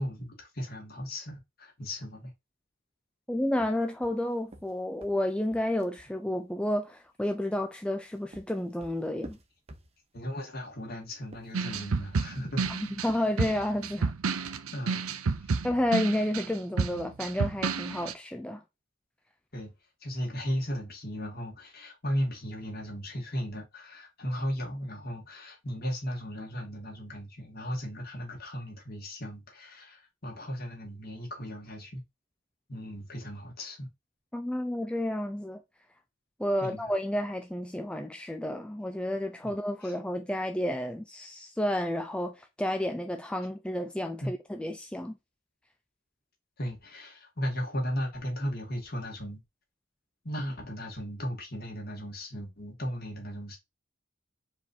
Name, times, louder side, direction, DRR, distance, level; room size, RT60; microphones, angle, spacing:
voice 1, 0.0-2.3 10.1-12.7 14.7-15.0 15.4-15.5 19.5-19.7 20.0-32.0 32.7-33.9 36.6-36.9 39.4-39.5 39.8-39.9 44.2-44.3 46.6-49.4 50.2-53.6, equal, 45° left, 2.1 m, -36 dB
voice 2, 3.3-9.4 12.7-12.8 13.0-14.1 14.4-14.5 15.6-18.6 34.3-35.6 36.4-45.2, left 1 dB, 5° left, 0.4 m, -31 dB
sound 1, 3.5-6.1 7.8-10.3 11.2-13.8, right 1 dB, 30° right, 0.8 m, -50 dB
sound 2, 11.5-18.1, right 4 dB, 85° right, 0.6 m, -30 dB
4.7 x 4.1 x 2.7 m
head